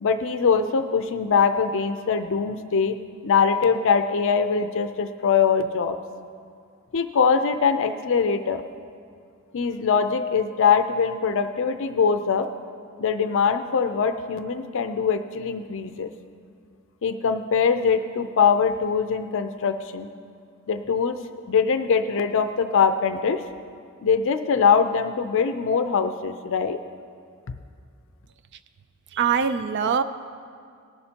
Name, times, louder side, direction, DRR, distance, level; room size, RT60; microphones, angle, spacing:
voice 1, 0.0-3.0 3.2-6.0 6.9-8.6 9.5-12.5 13.0-16.1 17.0-20.1 20.7-21.2 21.5-23.4 24.0-26.8, left 6 dB, 60° left, 8 dB, 0.5 m, -22 dB
voice 2, 29.1-30.0, right 7 dB, 55° right, 11 dB, 0.4 m, -22 dB
19.5 x 11.0 x 2.9 m, 2.3 s
head